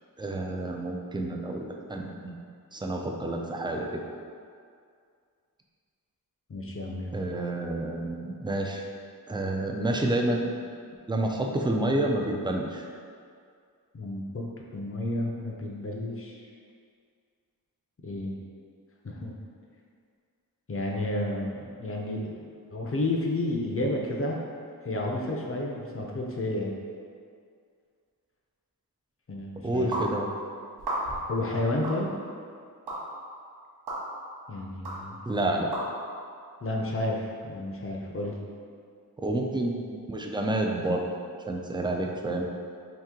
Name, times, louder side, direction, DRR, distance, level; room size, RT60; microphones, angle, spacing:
voice 1, 0.2-2.3 2.7-4.0 7.1-8.8 9.3-10.7 11.1-12.9 29.6-30.3 35.3-35.7 39.2-41.1 41.5-42.4, right 1 dB, 15° right, 1 dB, 0.3 m, -29 dB
voice 2, 6.5-7.1 13.9-16.4 18.0-18.4 19.0-19.3 20.7-24.4 24.8-26.8 29.3-29.9 31.3-32.1 34.5-35.2 36.6-38.4, left 1 dB, 35° left, -1 dB, 0.5 m, -31 dB
sound 1, 29.9-30.1 30.8-31.3 31.8-32.0 32.9-33.0 33.9-34.0 34.8-35.0 35.7-35.8, right 1 dB, 80° right, 0.9 m, -31 dB
2.9 x 2.7 x 3.6 m, 2.2 s
wide cardioid pair, 60°, 38 cm